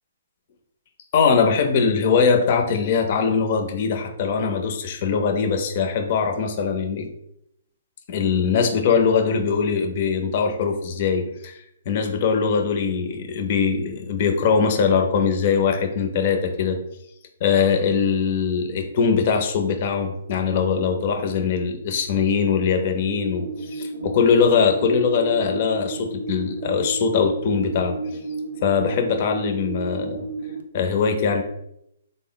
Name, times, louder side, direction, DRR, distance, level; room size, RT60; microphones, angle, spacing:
voice 1, 1.1-7.1 8.1-16.8 17.4-28.0 28.6-30.2 30.7-31.4, left 6 dB, 40° left, 4 dB, 0.5 m, -21 dB
sound 1, 23.1-30.6, right 3 dB, 85° right, 0.5 m, -32 dB
3.7 x 2.0 x 3.8 m, 0.78 s
hypercardioid pair, 160°, 0 cm